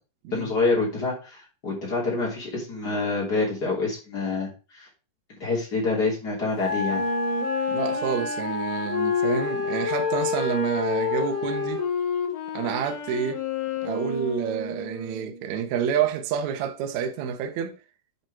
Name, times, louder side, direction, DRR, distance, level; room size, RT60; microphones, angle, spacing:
voice 1, 0.3-4.9 5.4-7.0, left 3 dB, 25° left, 3.0 m, -27 dB
Wind instrument woodwind instrument, 6.6-11.8, left 1 dB, ahead, 1.0 m, -32 dB
Wind instrument woodwind instrument 2, 6.8-15.4, left 6 dB, 90° left, 4.2 m, -29 dB
voice 2, 7.7-11.8 12.5-13.4 13.8-17.7, right 8 dB, 85° right, 1.6 m, -28 dB
9.7 x 4.4 x 4.8 m
omnidirectional pair, 4.9 m